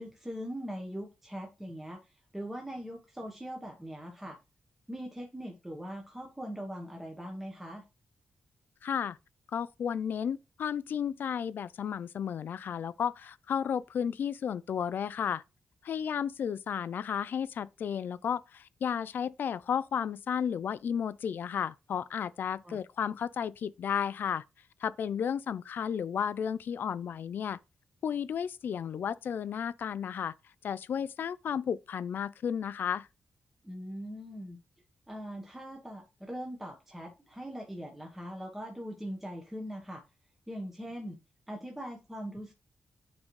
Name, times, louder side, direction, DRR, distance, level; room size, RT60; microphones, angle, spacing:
voice 1, 0.0-2.0 2.3-4.4 4.9-7.8 22.6-22.8 33.6-34.6 35.1-40.0 40.5-41.2 41.5-42.5, equal, 5° right, 1.1 m, -41 dB
voice 2, 8.8-9.2 9.5-15.4 15.8-24.4 24.8-27.6 28.0-30.3 30.6-33.1, left 8 dB, 65° left, 0.4 m, -33 dB
9.6 x 3.9 x 3.2 m
wide cardioid pair, 140°, 4 cm